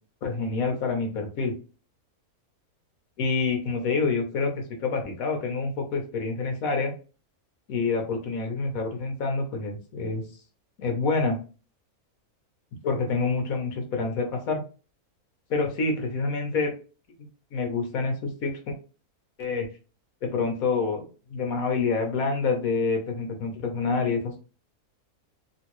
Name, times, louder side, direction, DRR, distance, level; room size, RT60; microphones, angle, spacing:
voice 1, 0.2-1.5 3.2-6.9 7.7-10.2 10.8-11.4 12.8-14.6 15.5-16.7 17.5-18.7 19.4-19.7 20.2-21.0 21.3-24.4, left 4 dB, 70° left, 3 dB, 1.4 m, -27 dB
3.7 x 2.6 x 3.0 m, 0.35 s
omnidirectional pair, 1.5 m